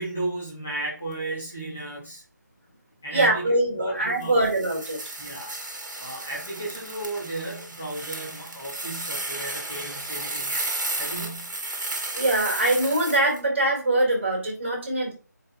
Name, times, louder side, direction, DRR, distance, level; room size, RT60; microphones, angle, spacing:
voice 1, 0.0-2.2 3.0-4.4 5.2-5.5 6.0-11.5, right 2 dB, 5° left, -6 dB, 0.4 m, -34 dB
voice 2, 3.1-5.0 12.1-15.1, right 1 dB, 35° right, -2 dB, 4.3 m, -23 dB
sound 1, 4.2-13.4, right 2 dB, 75° right, 2.2 m, -33 dB
8.4 x 5.1 x 3.1 m, 0.36 s
figure-of-eight pair, 175°, 10 cm